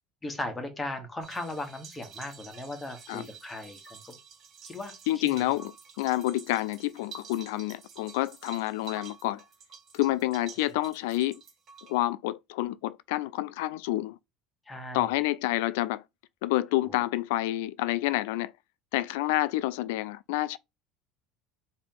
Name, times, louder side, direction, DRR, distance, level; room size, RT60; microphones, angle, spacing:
voice 1, 0.2-4.2 4.6-5.5 14.7-15.1 16.8-17.1, left 2 dB, 15° left, 1.2 m, -38 dB
sound 1, 1.2-12.0, right 6 dB, 45° right, 1.5 m, -49 dB
voice 2, 5.1-5.7 6.0-9.4 9.9-11.4 11.9-14.2 14.9-16.0 16.4-18.5 18.9-20.6, left 16 dB, 80° left, 0.3 m, -28 dB
3.5 x 2.8 x 3.7 m
supercardioid pair, 110°, 0 cm